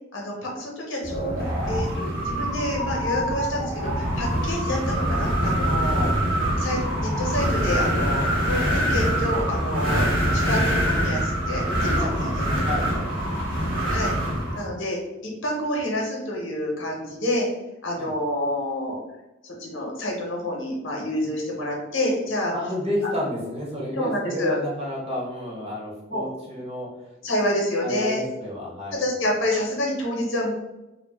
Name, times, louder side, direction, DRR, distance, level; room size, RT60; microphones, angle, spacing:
voice 1, 0.1-6.1 6.6-12.7 13.9-14.1 14.5-17.5 17.8-19.0 19.4-22.5 23.9-24.6 26.1-26.3 27.2-28.2 28.9-30.5, left 1 dB, 65° left, -1 dB, 0.8 m, -28 dB
Wind, 1.0-14.7, equal, 65° right, 1.0 m, -24 dB
voice 2, 12.0-13.3 18.0-18.1 22.5-26.9 27.8-29.0, left 1 dB, 30° right, -5 dB, 1.0 m, -31 dB
2.4 x 2.2 x 3.4 m, 0.99 s
head